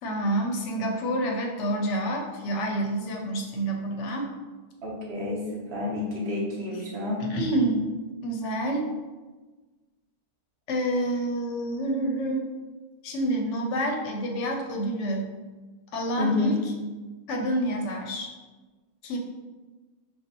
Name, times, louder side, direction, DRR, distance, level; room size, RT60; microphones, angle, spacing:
voice 1, 0.0-4.3 7.2-7.9 8.2-8.9 10.7-12.5 13.0-15.3 15.9-16.6 17.3-18.3 19.0-19.2, right 1 dB, 65° left, 2 dB, 0.8 m, -28 dB
voice 2, 4.8-7.3 16.2-16.6, left 2 dB, 50° right, -4 dB, 1.2 m, -29 dB
5.4 x 2.3 x 2.9 m, 1.3 s
omnidirectional pair, 1.5 m